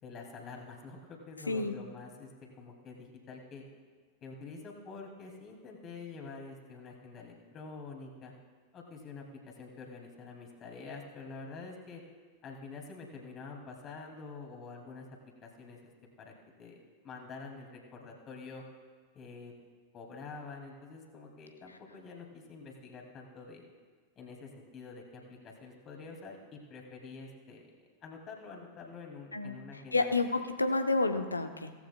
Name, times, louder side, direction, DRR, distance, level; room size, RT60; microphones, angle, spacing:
voice 1, 0.0-2.3 2.6-3.7 4.2-8.3 8.7-9.2 9.6-12.0 12.4-15.1 15.4-15.9 16.2-16.3 16.6-18.6 19.1-19.5 19.9-23.6 24.2-30.1, left 4 dB, 30° left, 1 dB, 2.4 m, -47 dB
voice 2, 29.3-31.8, left 3 dB, 80° left, 8 dB, 0.8 m, -30 dB
17.0 x 14.5 x 2.2 m, 1.5 s
figure-of-eight pair, 90°, 0 cm